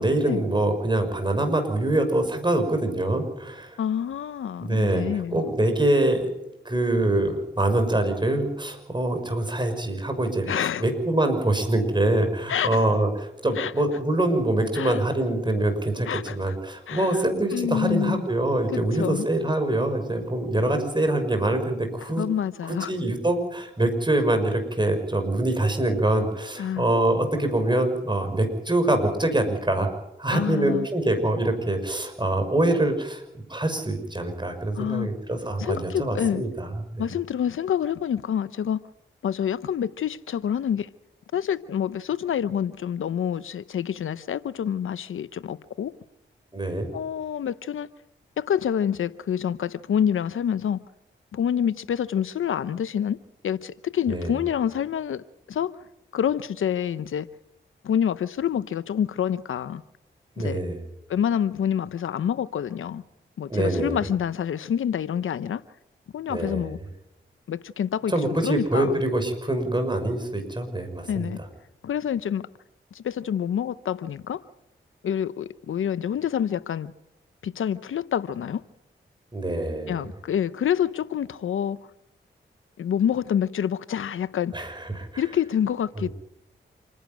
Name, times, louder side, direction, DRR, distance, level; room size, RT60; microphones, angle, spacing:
voice 1, 0.0-3.8 4.6-6.3 6.6-22.2 22.7-29.9 30.2-33.2 33.5-37.1 46.5-46.9 54.1-54.3 60.4-60.8 63.5-64.0 66.3-66.7 68.1-71.5 79.3-80.1 84.5-85.2 86.0-86.1, right 1 dB, 20° right, 6.4 m, -25 dB
voice 2, 3.8-5.4 10.5-10.9 12.5-12.8 13.6-13.7 14.7-15.0 16.1-16.5 16.9-17.2 17.5-18.2 18.7-19.3 22.2-22.9 26.6-26.9 30.3-30.9 34.8-35.1 35.6-36.4 37.0-38.8 39.2-40.9 41.3-45.9 46.9-47.9 48.4-50.8 51.3-53.2 53.4-55.8 56.1-57.3 57.8-59.8 60.4-60.6 61.1-63.0 63.4-65.6 66.1-66.8 67.5-69.0 71.1-71.4 71.8-72.5 72.9-74.4 75.0-76.9 77.4-78.6 79.9-81.8 82.8-84.5 85.2-86.1, left 9 dB, 80° left, 0.8 m, -27 dB
27.5 x 11.0 x 9.2 m
cardioid pair, 45°, 20 cm